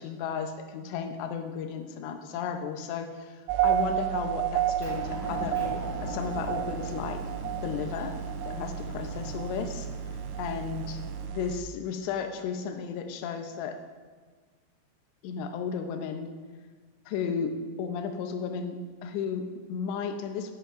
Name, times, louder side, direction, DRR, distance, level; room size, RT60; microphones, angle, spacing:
voice 1, 0.0-7.2 7.6-9.9 10.4-11.0 11.3-13.8 15.2-16.3 17.1-20.5, left 6 dB, 80° left, 5 dB, 2.6 m, -34 dB
sound 1, 3.5-11.6, right 11 dB, 85° right, 3.1 m, -31 dB
Motor vehicle (road) / Engine, 4.8-11.2, left 1 dB, 5° right, 2.6 m, -41 dB
15.5 x 10.5 x 2.6 m, 1.5 s
omnidirectional pair, 5.8 m